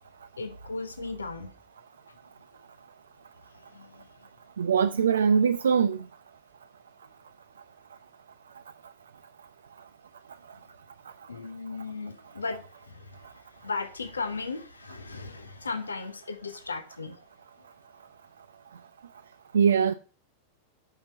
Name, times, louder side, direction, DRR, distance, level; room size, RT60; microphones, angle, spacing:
voice 1, 0.4-1.5 3.7-4.1 11.3-13.3 13.6-17.2, left 4 dB, 75° left, 1.0 m, -36 dB
voice 2, 4.6-6.0 19.5-19.9, right 7 dB, 70° right, 0.4 m, -22 dB
8.1 x 5.9 x 5.2 m
figure-of-eight pair, 90°, 0 cm